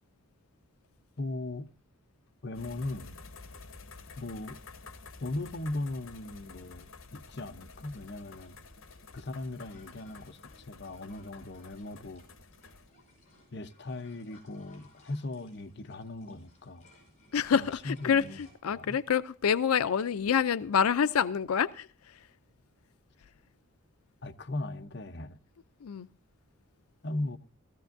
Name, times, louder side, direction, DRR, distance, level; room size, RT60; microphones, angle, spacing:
voice 1, 1.2-1.7 2.4-3.2 4.2-4.6 5.2-8.6 9.1-12.2 13.5-16.9 17.5-18.4 18.7-19.0 24.2-25.4 27.0-27.4, left 2 dB, 50° left, 0.7 m, -38 dB
sound 1, 2.5-12.9, left 4 dB, 70° left, 1.2 m, -50 dB
sound 2, 7.7-18.5, left 2 dB, 35° left, 5.6 m, -62 dB
voice 2, 17.3-22.3 25.8-26.1, left 7 dB, 90° left, 0.4 m, -27 dB
16.5 x 14.5 x 2.6 m
head